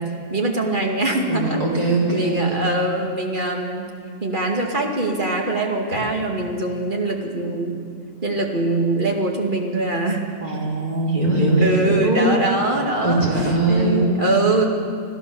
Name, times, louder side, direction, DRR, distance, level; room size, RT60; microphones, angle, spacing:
voice 1, 0.0-1.6 2.1-3.8 4.2-7.8 8.2-10.2 11.6-14.7, right 2 dB, 30° right, 1 dB, 2.4 m, -23 dB
voice 2, 1.3-2.7 5.9-6.0 10.4-12.3 13.0-14.1, right 2 dB, 65° right, -4 dB, 4.7 m, -21 dB
26.5 x 15.0 x 7.0 m, 2.3 s
omnidirectional pair, 1.8 m